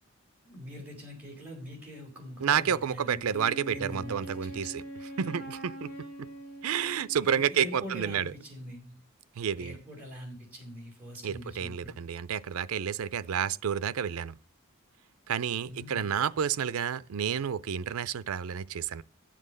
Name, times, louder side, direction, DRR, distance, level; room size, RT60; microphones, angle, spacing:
voice 1, 0.4-4.8 7.2-8.9 9.6-12.0 15.7-16.2, equal, 10° right, 4.6 m, -44 dB
voice 2, 2.4-4.8 5.2-5.9 6.6-8.2 9.4-9.8 11.2-14.3 15.3-19.0, right 8 dB, 85° right, 0.4 m, -30 dB
Wind instrument woodwind instrument, 3.3-7.7, right 1 dB, 45° left, 2.3 m, -43 dB
10.5 x 7.6 x 6.5 m
head